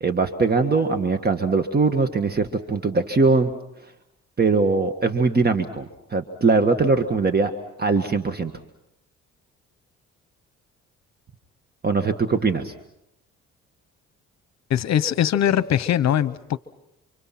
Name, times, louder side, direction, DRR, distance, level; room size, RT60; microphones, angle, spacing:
voice 1, 0.0-3.5 4.4-7.5 7.8-8.5 11.8-12.7, right 4 dB, 30° right, 8 dB, 1.7 m, -21 dB
voice 2, 14.7-16.6, left 10 dB, 60° left, 15 dB, 0.9 m, -21 dB
29.0 x 25.5 x 6.0 m, 0.83 s
cardioid pair, 90°, 30 cm